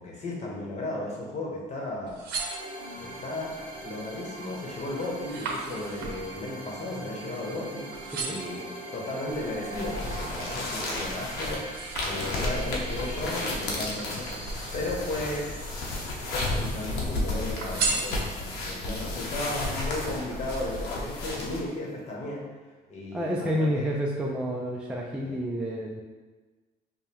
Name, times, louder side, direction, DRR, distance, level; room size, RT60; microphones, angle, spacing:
voice 1, 0.0-2.2 2.9-3.5 3.8-11.6 12.0-15.5 16.3-22.4 22.9-23.9 25.2-25.4, left 2 dB, 40° left, -2 dB, 1.0 m, -35 dB
sound 1, 1.9-3.2 3.8-4.2 4.5-7.6 7.9-8.6 9.2-10.7 11.1-12.7 13.6-14.7 15.3-16.1 16.4-17.1 17.6-18.7 19.2-19.3, right 4 dB, 70° right, 0.7 m, -36 dB
sound 2, 2.3-20.8, right 1 dB, 30° right, 1.0 m, -43 dB
sound 3, 9.3-21.6, left 2 dB, 80° left, 0.8 m, -33 dB
voice 2, 23.1-26.0, equal, 5° right, -2 dB, 0.4 m, -29 dB
5.2 x 2.2 x 2.9 m, 1.3 s
cardioid pair, 110°, 17 cm